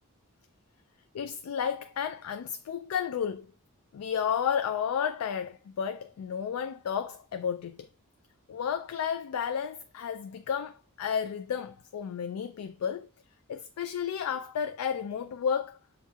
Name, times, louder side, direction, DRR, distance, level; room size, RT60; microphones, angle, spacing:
voice 1, 1.1-3.5 3.9-7.9 8.5-13.1 13.5-15.8, left 7 dB, 80° left, 0.3 m, -32 dB
6.8 x 2.7 x 2.3 m
head